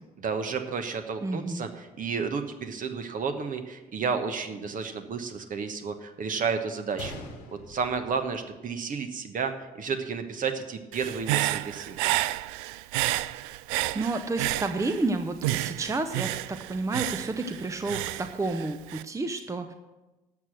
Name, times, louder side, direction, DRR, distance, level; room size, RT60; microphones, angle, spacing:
voice 1, 0.2-7.2 7.5-12.3, right 5 dB, 45° right, 7 dB, 1.2 m, -32 dB
voice 2, 1.2-1.7 13.7-19.7, right 3 dB, 15° right, 8 dB, 0.8 m, -31 dB
Gunshot gunfire, 7.0-9.0 9.3-9.4 10.1-10.3, left 2 dB, 70° left, 1.5 m, -44 dB
Human voice / Breathing, 10.9-15.1 15.4-19.0, right 17 dB, 65° right, 0.4 m, -30 dB
12.0 x 7.6 x 6.3 m, 1.1 s
figure-of-eight pair, 50°, 20 cm